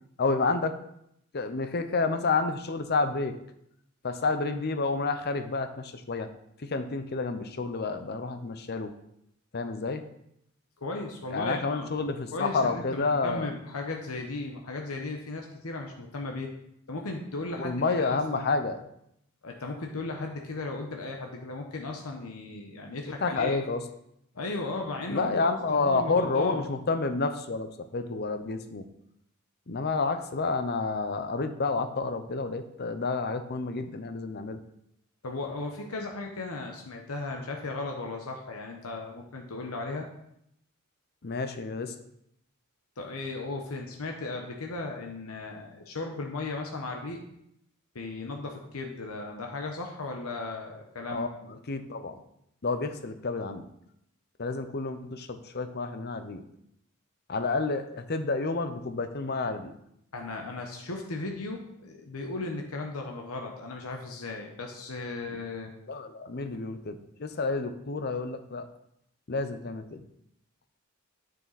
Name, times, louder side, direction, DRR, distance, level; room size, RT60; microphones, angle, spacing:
voice 1, 0.2-0.8 1.3-3.3 4.0-6.3 6.6-8.9 9.5-10.0 11.3-13.5 17.6-18.8 23.1-23.8 25.1-28.8 29.7-34.6 41.2-41.9 51.1-51.3 51.7-52.2 52.6-53.6 54.4-56.4 57.3-59.7 65.3-65.4 65.9-68.7 69.3-70.0, left 3 dB, 50° left, 9 dB, 0.7 m, -29 dB
voice 2, 10.8-11.9 12.3-16.5 16.9-18.5 19.4-23.6 24.3-26.6 35.2-40.1 43.0-47.2 47.9-51.6 60.1-65.7, left 3 dB, 85° left, 2 dB, 1.0 m, -36 dB
9.2 x 6.8 x 4.1 m, 0.76 s
head